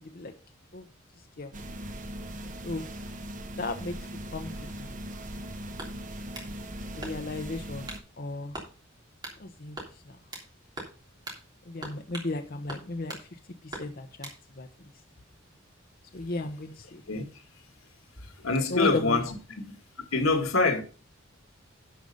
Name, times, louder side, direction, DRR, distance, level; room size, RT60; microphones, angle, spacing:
sound 1, 1.5-8.0, right 1 dB, 40° right, 1.1 m, -39 dB
voice 1, 3.6-3.9 4.3-4.9 7.0-8.6 9.4-9.8 10.1-10.2 11.7-13.2 13.6-14.3 14.6-14.7 16.1-17.0 18.7-19.2, left 2 dB, 45° left, 0.8 m, -34 dB
sound 2, 5.8-6.5 7.0-7.4 7.9-8.1 8.5-8.7 9.2-9.4 9.8-10.5 10.8-11.0 11.3-11.4 11.8-12.3 12.7-13.3 13.7-14.4, right 1 dB, 20° right, 3.2 m, -41 dB
voice 2, 18.4-19.3 20.1-20.8, left 3 dB, 85° left, 1.9 m, -24 dB
11.5 x 5.4 x 5.3 m
head